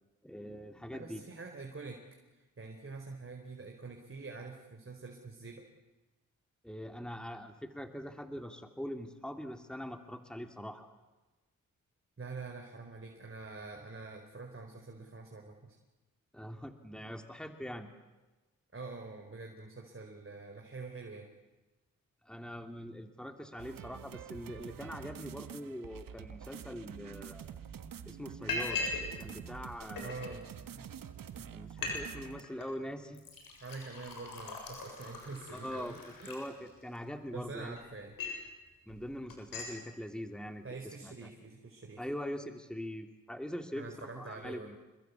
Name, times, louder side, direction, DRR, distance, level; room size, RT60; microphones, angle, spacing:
voice 1, 0.2-1.2 6.6-10.9 16.3-17.9 22.2-27.4 28.0-28.9 29.2-30.2 31.5-33.2 35.5-36.0 36.3-37.8 38.9-41.3 42.0-44.8, equal, ahead, 6 dB, 2.9 m, -43 dB
voice 2, 0.9-2.0 2.3-5.6 12.2-15.8 18.7-21.3 30.0-30.5 30.7-30.9 31.4-31.5 31.8-32.3 33.6-36.5 37.3-38.1 40.6-42.0 43.7-44.7, right 3 dB, 40° right, 2 dB, 4.6 m, -46 dB
sound 1, 23.6-32.4, right 8 dB, 75° right, 1.6 m, -47 dB
Liquid, 27.3-27.4 27.7-28.0 28.5-29.1 29.4-30.3 30.9-31.0 31.3-31.4 31.7-32.0 32.2-32.7 33.1-37.0 37.5-38.5 38.9-39.0 39.3-39.8, left 4 dB, 80° left, 7.3 m, -40 dB
28.0 x 22.0 x 8.4 m, 1.1 s
supercardioid pair, 45°, 34 cm